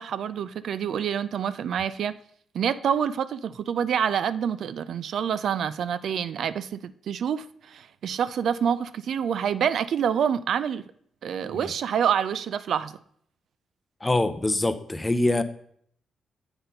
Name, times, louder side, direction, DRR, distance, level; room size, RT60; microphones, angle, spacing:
voice 1, 0.0-2.2 2.5-10.8 11.2-12.9, right 8 dB, 75° right, 15 dB, 0.3 m, -27 dB
voice 2, 14.0-15.4, left 2 dB, 20° left, 11 dB, 0.6 m, -24 dB
7.9 x 4.2 x 5.3 m, 0.65 s
cardioid pair, 90°, 0 cm